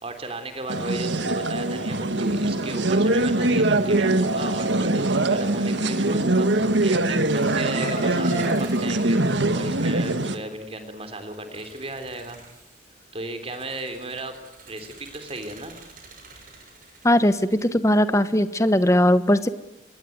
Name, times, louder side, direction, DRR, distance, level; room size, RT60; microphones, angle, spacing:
voice 1, 0.0-12.4 13.1-14.4 14.7-15.8, right 2 dB, 30° right, 8 dB, 3.6 m, -35 dB
sound 1, 0.7-10.3, right 2 dB, 70° right, 1.6 m, -22 dB
sound 2, 7.3-10.1 11.3-12.9 13.4-17.7, right 1 dB, 45° right, 7.2 m, -39 dB
voice 2, 17.0-19.5, left 1 dB, 15° left, 12 dB, 1.2 m, -19 dB
26.0 x 21.5 x 9.6 m, 0.92 s
head